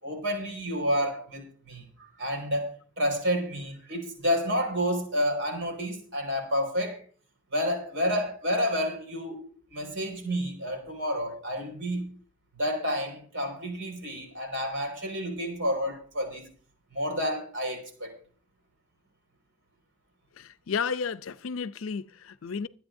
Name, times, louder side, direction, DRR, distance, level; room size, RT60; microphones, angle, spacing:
voice 1, 0.0-7.0 7.5-9.4 9.7-12.1 12.5-16.5 16.9-18.1, equal, 65° right, 5.1 m, -30 dB
voice 2, 20.4-22.7, left 6 dB, 75° left, 0.5 m, -32 dB
25.0 x 8.7 x 2.7 m
head